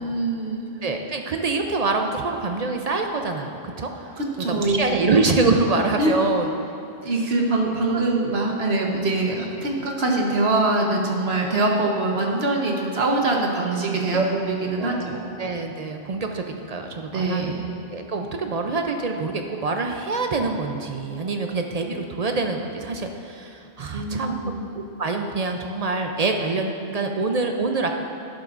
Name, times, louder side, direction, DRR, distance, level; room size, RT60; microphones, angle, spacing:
voice 1, 0.0-0.6 4.2-5.1 6.0-6.1 7.0-14.2 14.5-15.3 17.1-17.6 23.9-24.6, right 2 dB, 70° right, 0 dB, 1.3 m, -23 dB
voice 2, 0.8-6.5 7.2-7.3 7.9-8.0 14.1-14.3 14.8-15.0 15.4-17.5 17.9-24.3 24.7-27.9, right 3 dB, 50° right, 4 dB, 0.5 m, -25 dB
11.5 x 10.0 x 2.5 m, 2.7 s
omnidirectional pair, 1.1 m